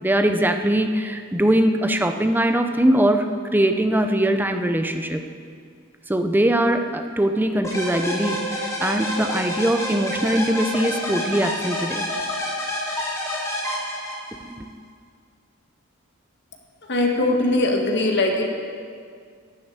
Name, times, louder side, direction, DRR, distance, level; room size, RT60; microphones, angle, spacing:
voice 1, 0.0-5.2 6.1-12.0 14.4-14.7, right 1 dB, 10° right, 7 dB, 0.6 m, -21 dB
sound 1, 7.6-14.5, left 1 dB, 15° left, 3.2 m, -28 dB
voice 2, 16.9-18.5, left 2 dB, 55° left, 2 dB, 1.6 m, -21 dB
11.5 x 7.6 x 8.9 m, 2.1 s
head